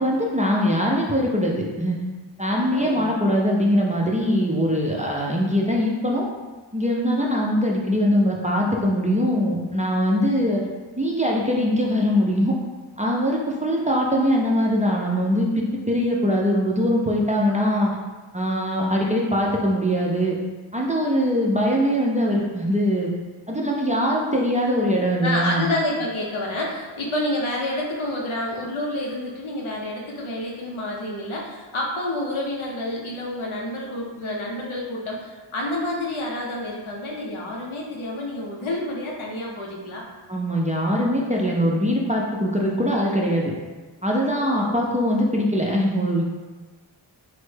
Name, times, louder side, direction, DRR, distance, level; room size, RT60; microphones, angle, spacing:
voice 1, 0.0-2.0 2.4-6.3 6.7-10.6 11.0-12.5 13.0-18.0 18.3-20.4 20.7-23.1 23.5-25.7 40.3-43.5 44.0-46.2, equal, 15° right, -3 dB, 0.4 m, -22 dB
voice 2, 25.2-40.0 44.3-44.7, left 1 dB, 80° left, -2 dB, 0.7 m, -29 dB
3.2 x 2.1 x 3.2 m, 1.3 s
wide cardioid pair, 45°, 48 cm